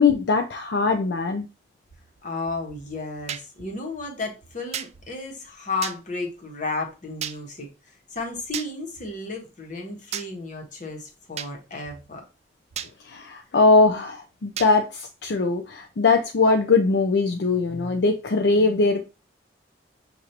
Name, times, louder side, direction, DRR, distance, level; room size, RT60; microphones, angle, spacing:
voice 1, 0.0-1.5 13.1-19.0, left 3 dB, 70° left, 5 dB, 0.5 m, -21 dB
voice 2, 2.2-7.7 8.1-12.2, left 3 dB, 45° left, 1 dB, 1.2 m, -33 dB
sound 1, 3.3-3.4 4.7-4.9 5.8-6.0 7.2-7.4 8.5-8.7 10.1-10.3 11.4-11.5 12.8-12.9 14.6-14.7, right 9 dB, 40° right, 0.3 m, -31 dB
6.5 x 2.6 x 2.9 m, 0.29 s
head